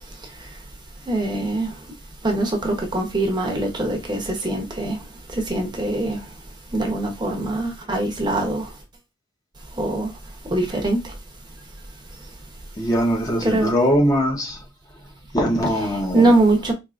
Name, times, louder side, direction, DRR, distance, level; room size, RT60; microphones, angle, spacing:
voice 1, 1.1-1.7 2.2-5.0 5.3-6.2 6.7-8.7 9.8-10.1 10.5-11.0 13.4-13.7 16.1-16.7, right 2 dB, 25° right, 0.8 m, -22 dB
voice 2, 12.8-14.6 15.3-16.3, equal, 20° left, 0.8 m, -21 dB
4.5 x 2.9 x 2.4 m
head